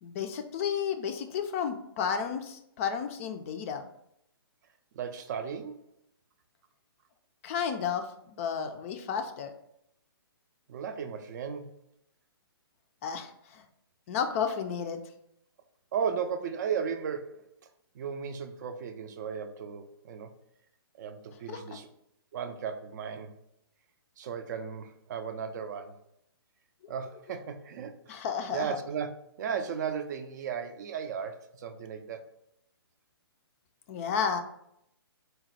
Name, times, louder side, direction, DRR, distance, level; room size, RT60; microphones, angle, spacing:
voice 1, 0.0-3.9 7.4-9.5 13.0-13.6 14.1-15.0 21.5-21.6 28.1-28.8 33.9-34.4, left 7 dB, 35° left, 7 dB, 0.4 m, -32 dB
voice 2, 4.9-5.9 10.7-11.7 15.9-17.5 17.9-20.3 21.0-21.9 22.3-23.3 24.2-26.0 26.9-28.1 28.5-29.1 29.4-32.3, right 7 dB, 45° right, 8 dB, 0.4 m, -35 dB
3.9 x 2.2 x 4.1 m, 0.75 s
hypercardioid pair, 140°, 13 cm